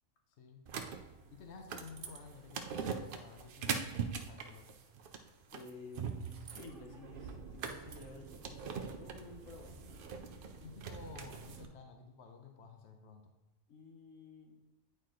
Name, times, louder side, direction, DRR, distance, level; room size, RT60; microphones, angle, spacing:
voice 1, 0.3-0.6 1.3-4.7 10.6-13.3, left 5 dB, 60° left, 4 dB, 1.0 m, -53 dB
sound 1, 0.7-11.7, right 6 dB, 55° right, 0.7 m, -42 dB
voice 2, 5.5-9.8 13.7-14.6, left 3 dB, 80° left, 3 dB, 1.4 m, -52 dB
8.9 x 4.4 x 3.8 m, 1.0 s
omnidirectional pair, 1.3 m